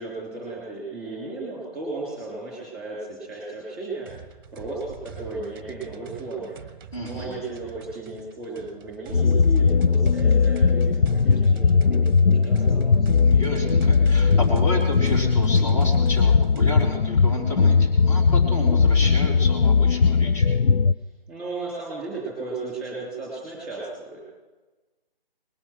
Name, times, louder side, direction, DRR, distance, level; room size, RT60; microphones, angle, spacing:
voice 1, 0.0-6.6 7.0-13.1 21.3-24.2, right 3 dB, 5° right, -4 dB, 3.5 m, -35 dB
sound 1, 4.0-17.0, right 6 dB, 25° right, 1.0 m, -40 dB
voice 2, 6.9-7.4 13.2-20.5, left 1 dB, 35° left, -2 dB, 3.8 m, -31 dB
sound 2, 9.1-20.9, left 5 dB, 80° left, 0.6 m, -19 dB
20.5 x 8.6 x 6.2 m, 1.2 s
figure-of-eight pair, 155°, 29 cm